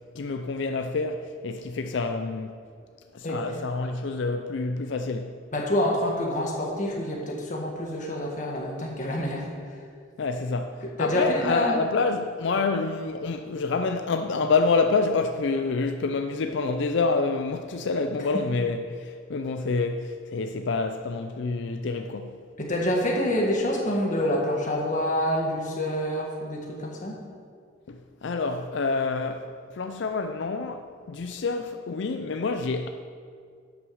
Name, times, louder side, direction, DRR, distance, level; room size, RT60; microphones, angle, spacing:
voice 1, 0.1-2.5 3.1-5.3 10.2-22.4 27.9-32.9, left 4 dB, 65° left, 0.4 m, -27 dB
voice 2, 5.5-9.5 10.8-11.8 22.6-27.2, left 1 dB, 40° left, 1.7 m, -27 dB
11.0 x 6.1 x 6.3 m
head